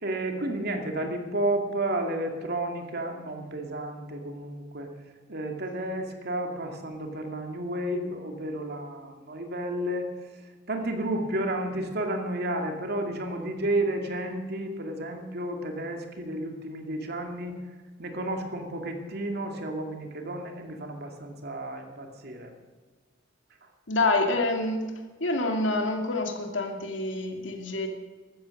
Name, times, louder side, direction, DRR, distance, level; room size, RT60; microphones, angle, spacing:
voice 1, 0.0-4.9 5.3-10.1 10.7-17.6 18.0-22.5, right 1 dB, 55° right, 4 dB, 2.4 m, -32 dB
voice 2, 23.9-24.8 25.2-27.9, left 2 dB, 70° left, 4 dB, 2.4 m, -27 dB
15.0 x 13.0 x 6.5 m, 1.4 s
head